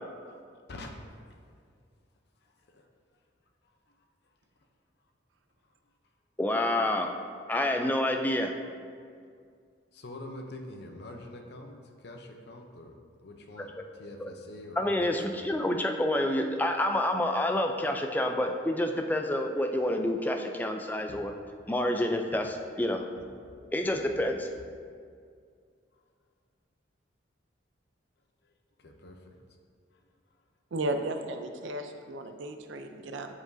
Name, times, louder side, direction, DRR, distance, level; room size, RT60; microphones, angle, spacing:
voice 1, 2.4-2.9 9.9-12.9 13.2-15.5 21.1-21.4 28.8-29.3, left 1 dB, 60° left, 3 dB, 0.6 m, -45 dB
voice 2, 6.4-7.1 7.5-8.5 14.2-14.3 14.8-21.3 21.7-23.0 23.7-24.5, left 1 dB, 10° left, 4 dB, 0.3 m, -28 dB
voice 3, 30.7-33.3, right 1 dB, 80° right, 7 dB, 0.5 m, -34 dB
7.7 x 4.8 x 2.6 m, 2.2 s
head